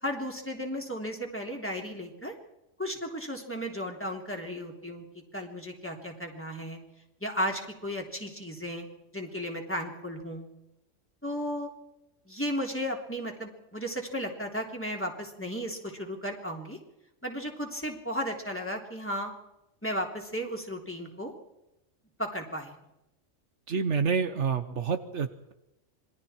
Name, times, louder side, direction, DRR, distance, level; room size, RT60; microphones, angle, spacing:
voice 1, 0.0-2.3 2.8-5.0 5.3-6.8 7.2-8.9 9.1-10.5 11.2-11.7 12.2-16.8 17.2-19.3 19.8-21.3 22.2-22.7, equal, 10° left, 1 dB, 3.3 m, -34 dB
voice 2, 23.7-25.5, right 6 dB, 70° right, 9 dB, 1.4 m, -28 dB
27.0 x 21.5 x 4.5 m, 0.88 s
omnidirectional pair, 1.3 m